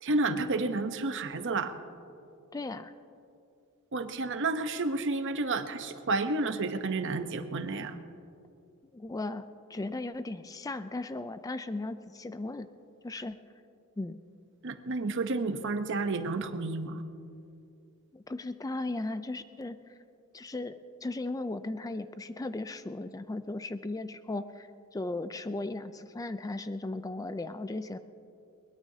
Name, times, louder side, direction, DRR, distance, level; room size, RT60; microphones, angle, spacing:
voice 1, 0.0-1.7 3.9-8.0 14.6-17.0, right 3 dB, 60° right, 9 dB, 0.8 m, -31 dB
voice 2, 2.5-2.9 8.9-9.4 9.7-12.7 13.0-13.4 14.0-14.2 18.1-19.9 20.3-28.0, left 2 dB, 15° left, 11 dB, 0.4 m, -36 dB
22.0 x 20.0 x 2.8 m, 2.5 s
head